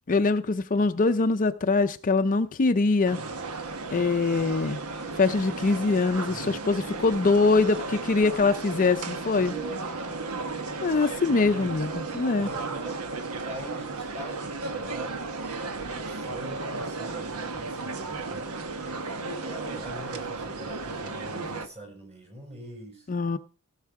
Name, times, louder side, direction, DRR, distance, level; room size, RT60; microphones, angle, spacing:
voice 1, 0.1-3.2 3.9-4.8 5.2-9.5 10.8-12.5 23.1-23.4, left 3 dB, 35° left, 0.5 m, -23 dB
sound 1, 3.0-21.7, right 3 dB, 80° right, 1.2 m, -34 dB
voice 2, 6.3-6.9 9.4-10.6 10.9-11.8 12.4-13.1 13.4-15.3 15.8-18.5 19.1-23.1, right 1 dB, 30° right, 5.8 m, -43 dB
15.5 x 7.3 x 4.7 m
head